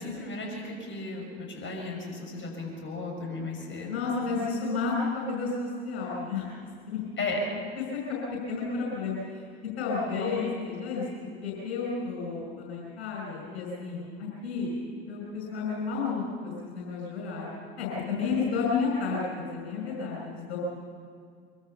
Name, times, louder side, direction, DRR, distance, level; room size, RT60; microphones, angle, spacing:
voice 1, 0.0-4.0 7.2-7.4 10.1-10.5, left 3 dB, 35° left, 0 dB, 6.8 m, -35 dB
voice 2, 3.9-6.5 6.9-7.0 7.8-8.2 8.5-9.1 9.8-11.0 11.4-14.7 15.1-17.5 17.8-20.6, left 4 dB, 75° left, -3 dB, 5.8 m, -31 dB
24.0 x 24.0 x 5.8 m, 2.1 s
figure-of-eight pair, 60°, 32 cm